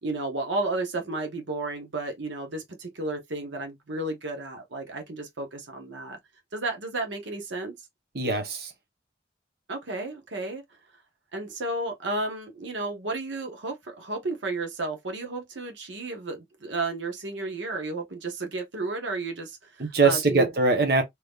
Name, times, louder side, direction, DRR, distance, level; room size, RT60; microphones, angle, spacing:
voice 1, 0.0-6.2 6.5-7.7 9.7-10.6 11.3-20.5, right 2 dB, 85° right, 1.0 m, -32 dB
voice 2, 8.1-8.7 19.8-21.0, right 3 dB, 55° right, 0.9 m, -22 dB
3.5 x 2.9 x 2.4 m
head